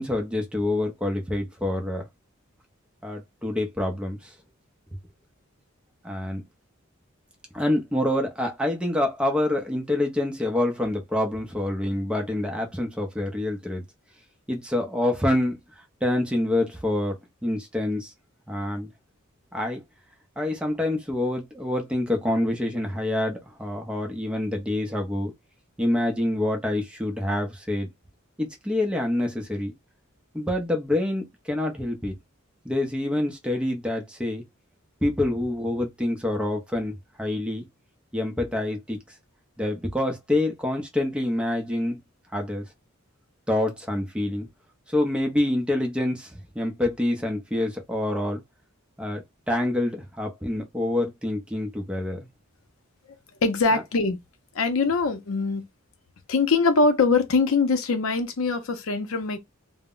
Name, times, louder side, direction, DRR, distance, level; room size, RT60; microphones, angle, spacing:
voice 1, 0.0-2.0 3.0-4.3 6.0-6.4 7.5-13.8 14.5-15.6 16.0-17.2 17.4-18.1 18.5-18.9 19.5-19.8 20.4-25.3 25.8-27.9 28.4-29.7 30.3-32.1 32.6-34.4 35.0-37.6 38.1-39.0 39.6-42.0 42.3-42.6 43.5-44.5 44.9-48.4 49.0-52.2 53.7-53.8, left 1 dB, 5° right, 0.5 m, -26 dB
voice 2, 53.4-54.2 54.5-55.6 56.3-59.4, left 4 dB, 75° left, 0.5 m, -22 dB
2.0 x 2.0 x 3.7 m
head